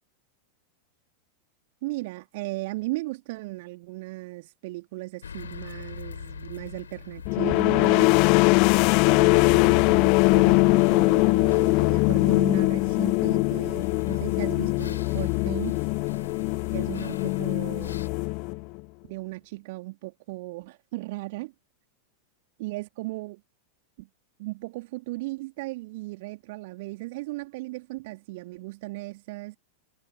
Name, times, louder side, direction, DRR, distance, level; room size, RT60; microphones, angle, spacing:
voice 1, 1.8-8.2 9.0-15.8 16.7-18.0 19.1-21.5 22.6-23.4 24.0-24.1 24.4-29.6, right 21 dB, 50° right, 2.7 m, -36 dB
sound 1, 5.2-18.1, left 7 dB, 70° left, 4.5 m, -41 dB
sound 2, 7.2-18.8, left 31 dB, 45° left, 0.3 m, -21 dB
figure-of-eight pair, 90°, 0 cm